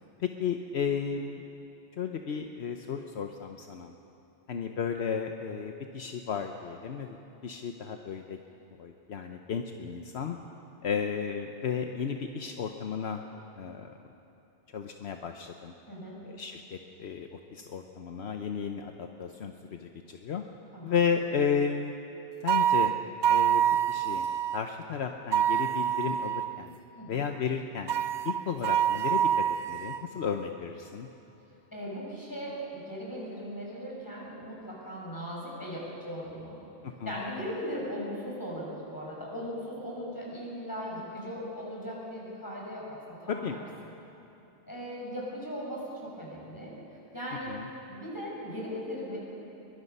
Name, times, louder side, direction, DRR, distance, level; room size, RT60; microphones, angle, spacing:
voice 1, 0.2-1.4 2.0-3.9 4.5-7.2 7.4-8.4 8.8-10.4 10.8-13.2 13.6-13.9 14.7-15.7 16.3-20.4 20.8-21.9 22.4-22.9 23.3-23.6 23.9-24.3 24.5-26.7 27.1-27.9 28.2-31.1 36.8-37.2 43.3-43.6 47.5-47.7, left 6 dB, 70° left, 4 dB, 1.1 m, -33 dB
voice 2, 15.9-16.2 20.7-21.0 27.0-27.3 31.7-36.7 37.0-43.4 44.7-46.8 47.1-47.5 47.9-49.2, equal, 15° left, -5 dB, 5.9 m, -38 dB
sound 1, 22.5-24.6 25.3-26.6 27.9-30.1, right 10 dB, 80° right, 0.9 m, -26 dB
22.5 x 22.0 x 5.5 m, 3.0 s
omnidirectional pair, 1.2 m